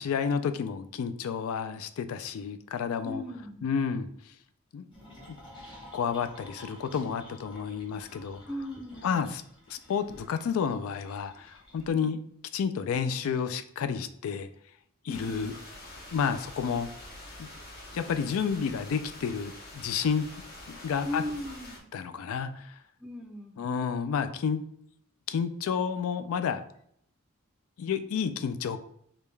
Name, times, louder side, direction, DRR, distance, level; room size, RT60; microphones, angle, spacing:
voice 1, 0.0-3.2 3.6-4.3 4.7-4.9 5.9-8.4 9.0-9.4 9.7-12.2 12.5-14.5 15.0-15.5 16.1-16.9 17.4-17.5 17.9-20.2 20.7-21.2 21.9-22.8 23.6-24.6 25.3-26.6 27.8-28.8, left 6 dB, 70° left, 11 dB, 0.3 m, -30 dB
voice 2, 3.0-3.6 8.5-9.2 15.1-15.5 21.0-21.8 23.0-23.6, left 1 dB, 5° right, 2 dB, 0.4 m, -38 dB
sound 1, 4.9-11.9, left 1 dB, 20° left, 1.1 m, -51 dB
sound 2, 15.1-21.8, left 1 dB, 45° left, 0.9 m, -46 dB
5.0 x 2.2 x 3.2 m, 0.68 s
head